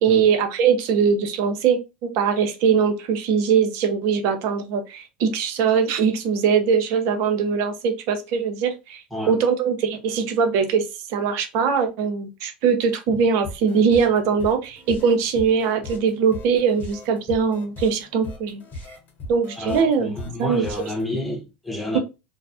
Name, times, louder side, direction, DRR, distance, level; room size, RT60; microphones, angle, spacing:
voice 1, 0.0-9.0 9.3-10.8 11.1-18.6 19.3-20.1 20.4-20.6, right 6 dB, 60° right, 0.6 m, -21 dB
sound 1, 13.4-21.0, left 2 dB, 40° left, 1.0 m, -38 dB
voice 2, 19.6-22.0, left 1 dB, ahead, 1.0 m, -30 dB
2.4 x 2.0 x 2.6 m
hypercardioid pair, 95°, 5 cm